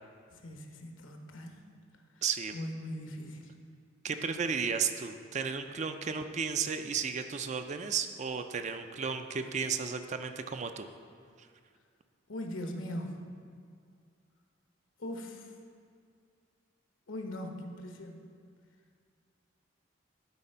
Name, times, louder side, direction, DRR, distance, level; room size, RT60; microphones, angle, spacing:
voice 1, 0.3-1.6 2.5-3.4 12.3-13.1 15.0-15.5 17.1-18.2, left 1 dB, 80° left, 3 dB, 1.0 m, -40 dB
voice 2, 2.2-2.5 4.0-10.9, right 6 dB, 35° right, 8 dB, 0.4 m, -33 dB
11.0 x 4.3 x 5.5 m, 2.1 s
head